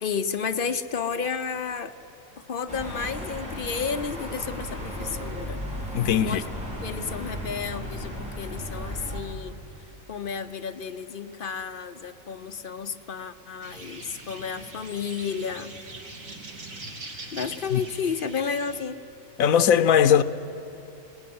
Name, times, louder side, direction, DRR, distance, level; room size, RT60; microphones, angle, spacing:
voice 1, 0.0-1.9 2.5-5.6 6.2-6.4 6.8-9.6 10.1-15.7 17.3-19.0, left 6 dB, 50° left, 0.8 m, -32 dB
sound 1, 2.7-9.2, equal, 5° right, 4.4 m, -35 dB
voice 2, 5.9-6.4 17.7-17.8 19.4-20.2, left 8 dB, 80° left, 1.1 m, -19 dB
sound 2, 13.6-18.8, right 2 dB, 75° right, 2.7 m, -42 dB
22.0 x 18.0 x 9.4 m
omnidirectional pair, 1.4 m